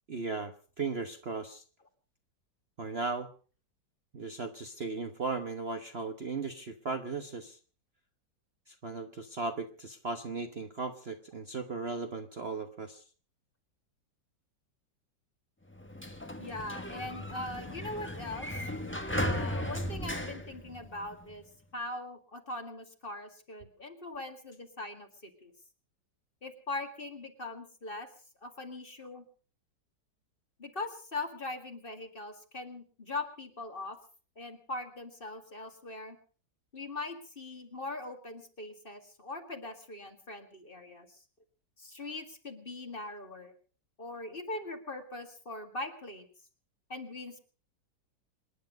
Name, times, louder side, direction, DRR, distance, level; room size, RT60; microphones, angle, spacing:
voice 1, 0.1-1.6 2.8-3.3 4.1-7.6 8.7-13.0, right 4 dB, 40° right, 6 dB, 1.1 m, -37 dB
Sliding door, 15.7-21.3, left 1 dB, 5° left, 1.2 m, -36 dB
voice 2, 16.4-18.6 19.2-21.4 21.7-25.5 26.4-28.1 28.4-29.2 30.6-34.0 34.4-36.2 36.7-41.2 41.8-43.5 44.0-46.3 46.9-47.4, left 2 dB, 30° left, 5 dB, 2.1 m, -41 dB
27.5 x 10.0 x 5.2 m, 0.40 s
omnidirectional pair, 1.9 m